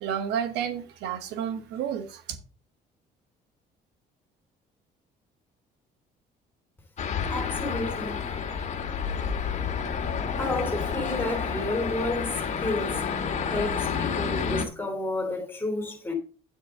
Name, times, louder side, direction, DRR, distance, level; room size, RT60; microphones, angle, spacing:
voice 1, 0.0-2.2, right 8 dB, 85° right, 1.2 m, -31 dB
sound 1, 7.0-14.6, left 6 dB, 45° left, 1.8 m, -29 dB
voice 2, 7.3-8.2 10.4-13.0 13.5-16.1, left 2 dB, 10° left, 3.0 m, -31 dB
9.6 x 8.4 x 3.6 m
cardioid pair, 110°, 17 cm